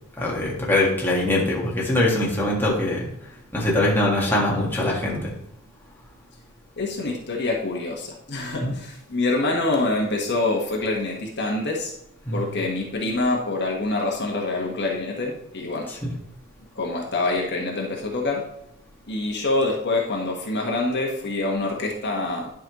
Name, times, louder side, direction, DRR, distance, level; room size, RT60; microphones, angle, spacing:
voice 1, 0.2-3.1 3.5-5.3 8.6-8.7 12.3-12.5 15.9-16.1, left 1 dB, 10° left, -4 dB, 1.7 m, -22 dB
voice 2, 6.8-11.9 12.3-15.8 16.7-18.4 19.1-22.5, left 2 dB, 50° left, -1 dB, 1.5 m, -26 dB
11.0 x 5.6 x 3.1 m, 0.80 s
head